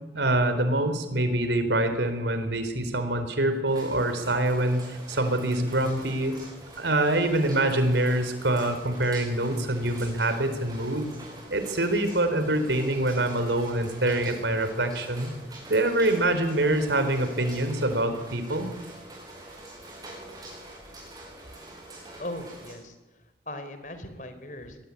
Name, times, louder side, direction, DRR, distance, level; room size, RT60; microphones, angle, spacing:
voice 1, 0.1-6.4 6.8-11.1 11.5-15.3 15.7-18.7, right 1 dB, 80° right, 9 dB, 4.2 m, -25 dB
sound 1, 3.7-22.8, right 1 dB, 20° right, 7.5 m, -45 dB
voice 2, 22.2-24.8, left 1 dB, 45° left, 10 dB, 3.9 m, -39 dB
25.0 x 22.0 x 9.9 m, 1.1 s
head